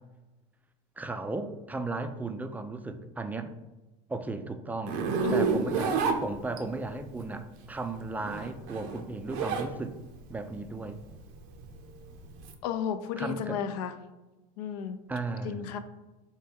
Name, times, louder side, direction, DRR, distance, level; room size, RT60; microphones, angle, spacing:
voice 1, 1.0-3.5 4.1-5.0 5.3-10.0 10.3-11.0 13.2-13.6 15.1-15.8, right 3 dB, 10° right, 7 dB, 0.3 m, -35 dB
Zipper (clothing), 4.9-6.9 8.1-9.7 10.1-12.5, right 5 dB, 65° right, 0.6 m, -30 dB
voice 2, 5.2-5.6 12.6-13.9 14.6-15.0 15.4-15.8, left 8 dB, 75° left, 10 dB, 0.4 m, -33 dB
4.4 x 2.2 x 3.3 m, 1.1 s
hypercardioid pair, 85°, 20 cm